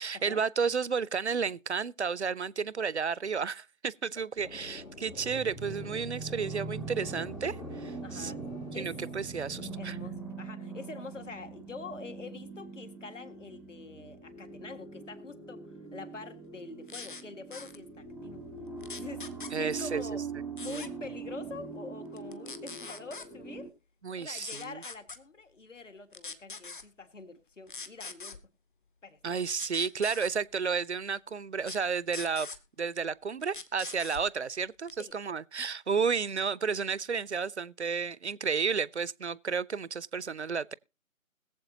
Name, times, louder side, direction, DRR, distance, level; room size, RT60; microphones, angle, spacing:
voice 1, 0.0-8.3 8.8-10.0 19.5-20.0 20.7-20.8 24.0-24.8 29.2-32.5 32.8-40.7, right 5 dB, 55° right, 0.5 m, -32 dB
sound 1, 4.4-9.8, left 3 dB, 75° left, 2.3 m, -47 dB
sound 2, 5.1-23.7, right 4 dB, ahead, 0.5 m, -42 dB
voice 2, 8.0-8.4 8.7-8.9 9.8-15.6 15.9-18.5 18.9-20.3 20.6-23.7 24.2-28.4 29.0-29.2 35.0-35.1, left 3 dB, 60° left, 1.9 m, -45 dB
sound 3, 16.9-17.2 17.5-17.8 18.8-19.5 20.6-20.9 22.2-23.3 24.3-25.2 26.1-26.8 27.7-28.4 29.6-30.3 31.6-31.8 32.1-32.6 33.4-34.2 34.9-35.1, left 4 dB, 35° left, 0.9 m, -42 dB
21.5 x 7.6 x 2.8 m
figure-of-eight pair, 150°, 42 cm